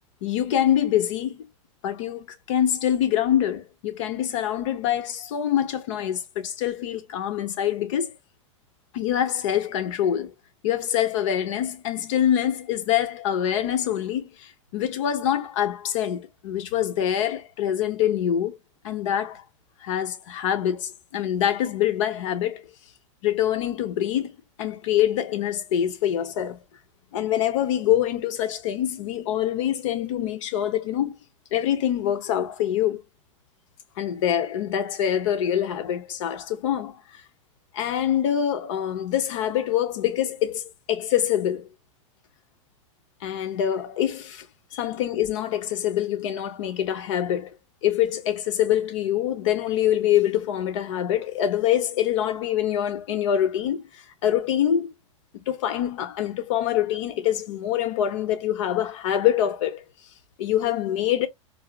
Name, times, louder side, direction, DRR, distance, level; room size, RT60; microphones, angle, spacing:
voice 1, 0.2-1.5 1.8-8.1 8.9-10.3 10.6-18.6 18.8-19.4 19.8-22.6 23.2-26.6 27.1-31.1 31.5-33.0 34.0-37.2 37.7-41.7 43.2-44.5 44.7-47.5 47.8-54.9 55.3-59.8 60.4-61.3, left 10 dB, 70° left, 0.8 m, -25 dB
4.6 x 2.0 x 2.2 m
hypercardioid pair, 120°, 17 cm